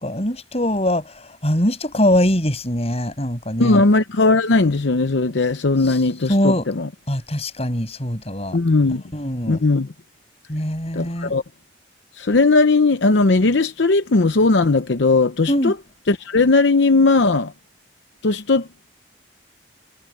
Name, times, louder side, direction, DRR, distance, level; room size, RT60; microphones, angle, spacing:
voice 1, 0.0-3.8 5.9-6.0 6.3-6.7 7.1-8.6 9.1-9.6 10.5-11.3 15.5-15.7, left 1 dB, 35° left, 7.9 m, -22 dB
voice 2, 3.6-6.9 8.5-9.0 9.5-9.9 10.9-11.4 12.2-15.7 16.1-17.5 18.2-18.7, left 3 dB, 70° left, 0.8 m, -17 dB
head